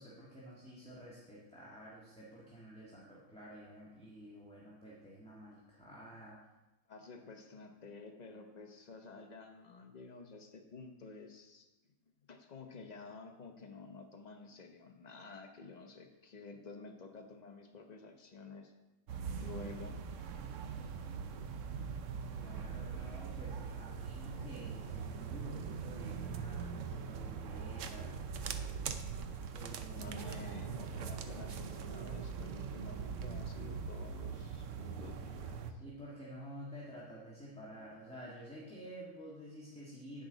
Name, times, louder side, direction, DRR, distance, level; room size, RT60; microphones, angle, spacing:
voice 1, 0.0-6.4 22.3-28.2 29.5-30.2 35.8-40.3, equal, 5° left, -7 dB, 1.4 m, -50 dB
voice 2, 6.9-11.7 12.3-18.7 19.4-20.0 24.3-24.5 29.9-35.8, left 3 dB, 40° left, 4 dB, 0.6 m, -51 dB
sound 1, 19.1-35.7, right 6 dB, 65° right, 0.8 m, -42 dB
10.0 x 8.7 x 4.0 m, 1.0 s
omnidirectional pair, 1.9 m